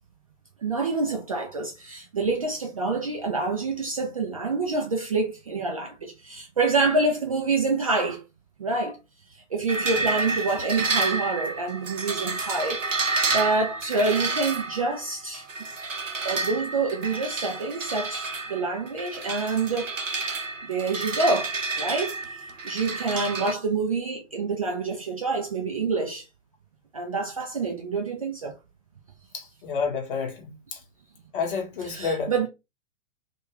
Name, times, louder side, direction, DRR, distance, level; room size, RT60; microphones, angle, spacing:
voice 1, 0.6-8.2 8.6-9.0 9.5-15.4 16.2-19.9 20.2-22.2 22.6-26.2 26.9-28.5 31.8-32.5, right 3 dB, 30° right, 0.3 m, -27 dB
sound 1, 9.7-23.5, right 3 dB, 80° right, 0.7 m, -30 dB
voice 2, 29.3-30.8 31.3-32.3, left 5 dB, 45° left, 0.9 m, -30 dB
2.3 x 2.2 x 3.2 m
figure-of-eight pair, 115°, 38 cm